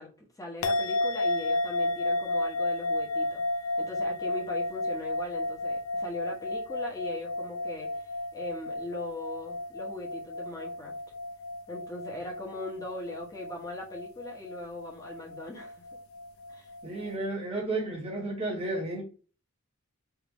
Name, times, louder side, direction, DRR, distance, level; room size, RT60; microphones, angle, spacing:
voice 1, 0.0-3.4 3.8-10.9 11.7-15.7 16.5-16.7, left 2 dB, 15° left, 1.1 m, -40 dB
sound 1, 0.6-17.1, left 2 dB, 70° left, 0.5 m, -33 dB
voice 2, 16.8-19.0, right 2 dB, 30° right, 1.3 m, -32 dB
3.6 x 2.7 x 3.1 m
head